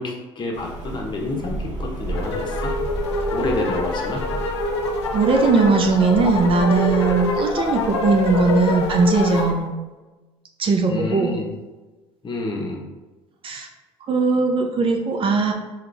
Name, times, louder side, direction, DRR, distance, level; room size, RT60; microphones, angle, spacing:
voice 1, 0.0-2.7 3.3-4.2 10.9-11.5 12.2-12.8, left 2 dB, 35° left, 0 dB, 1.0 m, -28 dB
Rain, 0.5-9.5, right 2 dB, 60° right, 1.1 m, -33 dB
sound 1, 2.1-9.5, left 3 dB, 90° left, 0.4 m, -25 dB
voice 2, 5.1-9.7 10.6-11.4 13.4-13.7 14.1-15.5, right 4 dB, 40° right, 2 dB, 0.6 m, -19 dB
3.7 x 3.0 x 3.4 m, 1.2 s
hypercardioid pair, 65°, 14 cm